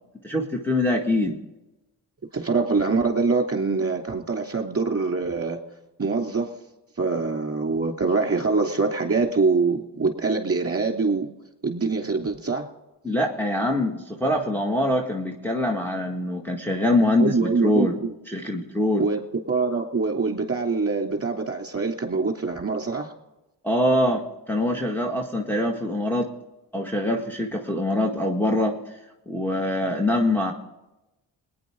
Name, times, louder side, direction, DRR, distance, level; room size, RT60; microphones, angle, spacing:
voice 1, 0.2-1.3 13.0-17.9 18.3-19.1 23.6-26.3 26.7-28.8 29.3-30.5, left 1 dB, 5° left, -1 dB, 1.9 m, -24 dB
voice 2, 2.3-5.6 6.0-6.5 7.0-11.3 11.6-12.7 17.2-17.9 19.0-19.2 19.5-23.1, right 4 dB, 30° right, 3 dB, 2.9 m, -24 dB
21.0 x 10.0 x 3.7 m, 0.98 s
supercardioid pair, 40°, 46 cm